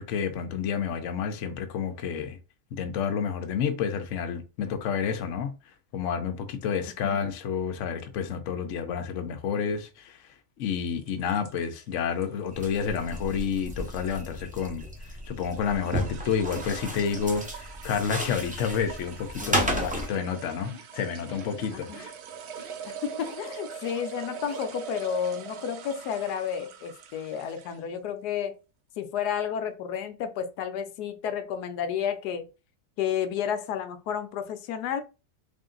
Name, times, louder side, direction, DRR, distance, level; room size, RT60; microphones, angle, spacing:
voice 1, 0.0-2.4 2.7-5.5 5.9-10.2 10.6-14.8 15.3-22.1, left 7 dB, 60° left, 0.9 m, -30 dB
sound 1, 10.7-27.9, right 7 dB, 75° right, 1.1 m, -43 dB
sound 2, 12.5-20.1, equal, 10° right, 0.4 m, -33 dB
voice 2, 19.4-19.7 21.7-22.0 22.8-28.5 29.0-32.5 33.0-35.0, left 8 dB, 80° left, 1.1 m, -31 dB
sound 3, 20.0-20.3 20.7-20.9 21.3-21.6 21.9-22.1 22.6-22.7 23.2-23.4 23.8-24.0 24.5-24.6, right 3 dB, 60° right, 0.5 m, -46 dB
3.5 x 2.6 x 3.8 m
omnidirectional pair, 1.7 m